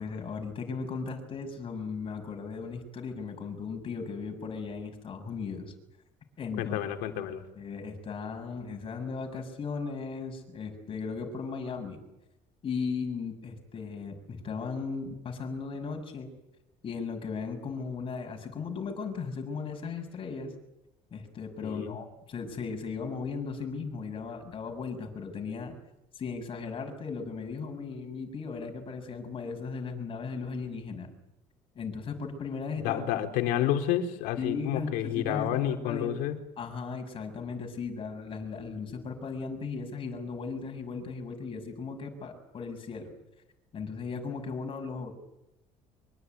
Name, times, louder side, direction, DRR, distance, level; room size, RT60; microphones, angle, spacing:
voice 1, 0.0-5.7 6.4-6.8 7.5-12.0 12.6-16.3 16.8-20.5 21.1-25.7 26.2-31.1 31.8-33.0 34.4-36.3 36.6-43.1 43.7-45.1, left 5 dB, 40° left, 4 dB, 7.1 m, -36 dB
voice 2, 6.6-7.4 21.6-22.0 32.8-36.4, left 11 dB, 90° left, 5 dB, 3.9 m, -30 dB
25.0 x 24.5 x 9.6 m, 0.91 s
cardioid pair, 130°, 14 cm